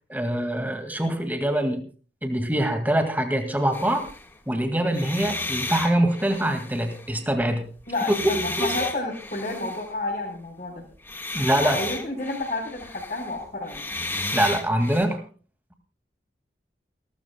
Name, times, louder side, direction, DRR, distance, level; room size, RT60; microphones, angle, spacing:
voice 1, 0.1-1.8 2.2-4.1 4.5-7.6 8.6-8.9 11.3-11.8 14.3-15.2, right 1 dB, 10° right, 6 dB, 2.0 m, -24 dB
sound 1, 3.7-4.3 4.9-7.4 7.8-9.9 11.0-15.1, left 2 dB, 10° left, 1.5 m, -33 dB
voice 2, 7.9-10.8 11.6-13.9, left 2 dB, 45° left, -2 dB, 4.2 m, -30 dB
29.0 x 13.0 x 2.2 m, 0.38 s
head